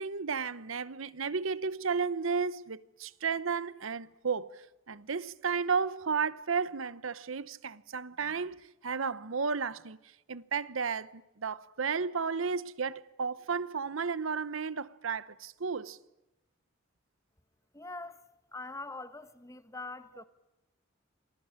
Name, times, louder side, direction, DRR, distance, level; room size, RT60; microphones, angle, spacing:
voice 1, 0.0-10.0 10.3-16.0, right 5 dB, 80° right, 0.9 m, -33 dB
voice 2, 17.7-18.2 18.5-20.2, left 2 dB, 15° left, 1.3 m, -43 dB
27.5 x 20.0 x 8.8 m
head